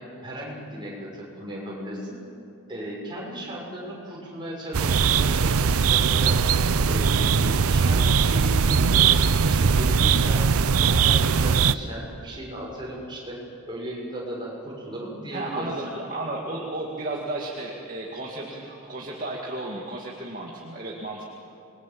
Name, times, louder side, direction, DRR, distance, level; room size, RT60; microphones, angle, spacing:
voice 1, 0.0-2.2 2.7-6.4 6.9-9.2 9.5-13.4 13.7-15.7, equal, 20° right, -4 dB, 6.5 m, -36 dB
sound 1, 4.7-11.7, right 6 dB, 80° right, 0.6 m, -20 dB
voice 2, 15.3-21.2, right 2 dB, 40° right, -2 dB, 2.2 m, -33 dB
27.5 x 21.5 x 7.7 m, 2.8 s
head